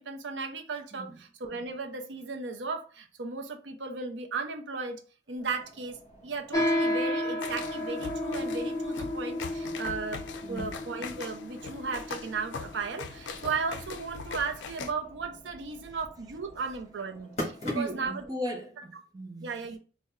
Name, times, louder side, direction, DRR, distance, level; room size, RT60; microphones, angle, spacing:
voice 1, 0.0-5.0 5.3-18.3 18.8-18.9 19.4-19.8, right 4 dB, 70° right, 0.6 m, -36 dB
sound 1, 5.4-18.2, left 1 dB, 35° left, 1.8 m, -45 dB
sound 2, 6.5-14.3, left 1 dB, 20° left, 0.7 m, -33 dB
sound 3, 7.4-14.9, left 5 dB, 75° left, 0.4 m, -41 dB
voice 2, 17.7-19.5, equal, 20° right, 0.5 m, -37 dB
4.1 x 2.1 x 3.6 m
head